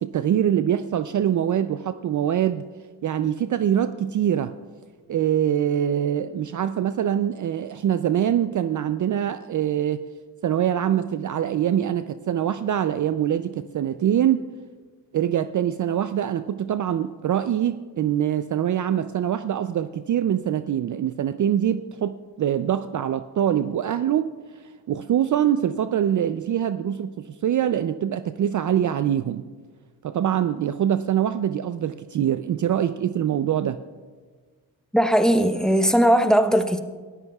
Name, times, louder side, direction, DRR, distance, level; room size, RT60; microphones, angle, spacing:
voice 1, 0.0-2.6 3.0-4.5 5.1-10.0 10.4-14.5 15.1-24.3 24.9-29.4 30.0-33.8, right 10 dB, 45° right, 12 dB, 0.5 m, -24 dB
voice 2, 34.9-36.8, equal, ahead, 7 dB, 1.0 m, -18 dB
22.5 x 13.5 x 2.3 m, 1.5 s
cardioid pair, 75°, 44 cm